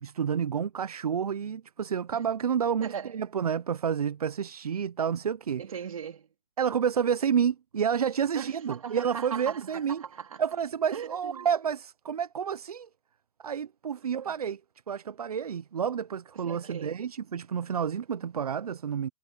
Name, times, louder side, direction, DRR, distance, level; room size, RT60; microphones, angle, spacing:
voice 1, 0.0-5.6 6.6-10.0 10.4-12.9 13.4-14.6 14.9-19.1, right 7 dB, 85° right, 0.8 m, -29 dB
voice 2, 2.8-3.2 5.6-6.3 8.3-10.4 10.9-11.5 14.2-14.3 16.3-17.0, right 7 dB, 65° right, 3.8 m, -39 dB
hypercardioid pair, 165°, 19 cm